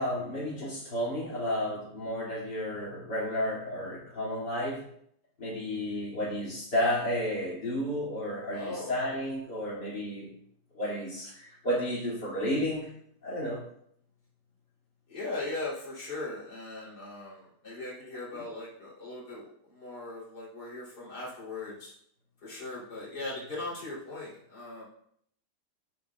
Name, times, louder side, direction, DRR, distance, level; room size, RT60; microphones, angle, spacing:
voice 1, 0.0-4.8 5.4-10.3 10.7-12.9 13.2-13.6, equal, 90° left, -3 dB, 3.2 m, -32 dB
voice 2, 8.5-8.9 15.1-21.9 22.4-24.8, left 2 dB, 70° left, -6 dB, 3.8 m, -39 dB
13.5 x 7.0 x 2.3 m, 0.68 s
omnidirectional pair, 1.8 m